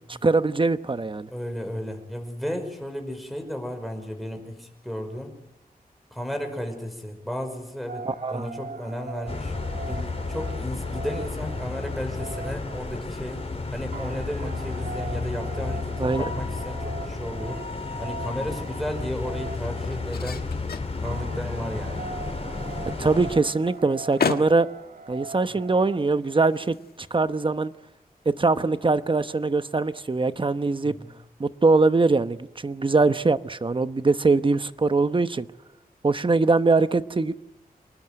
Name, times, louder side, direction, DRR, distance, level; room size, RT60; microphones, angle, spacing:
voice 1, 0.1-1.3 8.0-8.5 16.0-16.3 23.0-24.7 25.1-27.7 28.2-30.9 31.4-35.5 36.0-37.3, right 3 dB, 35° right, 12 dB, 1.0 m, -22 dB
voice 2, 1.3-5.3 6.1-9.5 9.9-13.4 13.7-17.6 18.0-20.4 21.0-22.0 30.8-31.1, equal, ahead, 4 dB, 5.6 m, -34 dB
sound 1, 7.9-26.0, right 4 dB, 75° right, 2.4 m, -41 dB
sound 2, 9.3-23.4, left 3 dB, 40° left, 3.8 m, -32 dB
sound 3, 18.8-27.6, left 5 dB, 85° left, 1.5 m, -37 dB
27.0 x 20.5 x 9.2 m, 0.95 s
wide cardioid pair, 125°, 16 cm